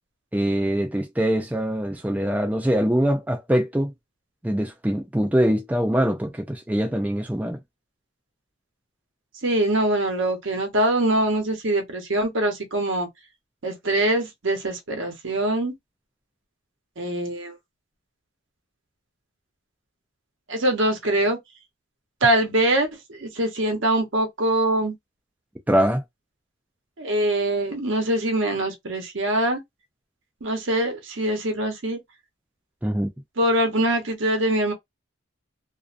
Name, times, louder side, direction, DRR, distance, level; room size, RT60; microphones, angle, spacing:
voice 1, 0.3-3.9 4.4-7.6 25.7-26.0 32.8-33.1, equal, 10° right, 0.3 m, -23 dB
voice 2, 9.4-13.1 13.6-15.7 17.0-17.5 20.5-21.4 22.2-24.9 27.0-29.6 30.4-32.0 33.4-34.7, right 1 dB, 70° right, 0.9 m, -23 dB
2.5 x 2.1 x 2.5 m
head